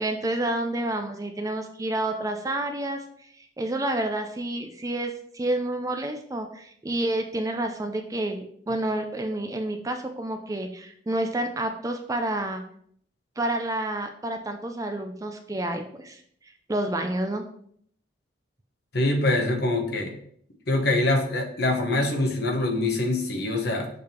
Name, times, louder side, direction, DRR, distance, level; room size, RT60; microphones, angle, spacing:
voice 1, 0.0-12.6 13.4-16.2 16.7-17.4, right 1 dB, 15° right, 5 dB, 0.4 m, -29 dB
voice 2, 18.9-20.1 20.7-23.9, left 2 dB, 55° left, 3 dB, 1.1 m, -24 dB
6.7 x 3.5 x 4.3 m, 0.65 s
head